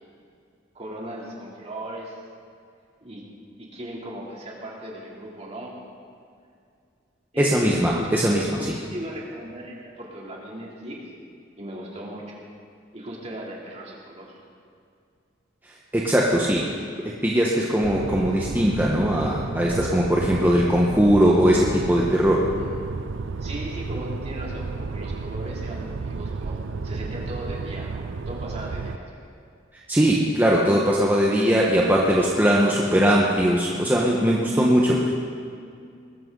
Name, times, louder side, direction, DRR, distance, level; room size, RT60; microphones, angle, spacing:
voice 1, 0.7-2.2 3.0-3.2 3.6-5.8 7.3-8.1 8.6-11.1 11.6-12.5 12.9-14.4 22.5-22.9 23.4-29.2, right 1 dB, 35° right, -4 dB, 3.0 m, -37 dB
voice 2, 7.4-8.5 15.9-16.7 17.0-22.5 29.9-35.1, equal, 10° right, -3 dB, 1.2 m, -20 dB
sound 1, 17.8-29.0, right 4 dB, 80° right, 0.5 m, -32 dB
20.5 x 13.5 x 3.9 m, 2.3 s
head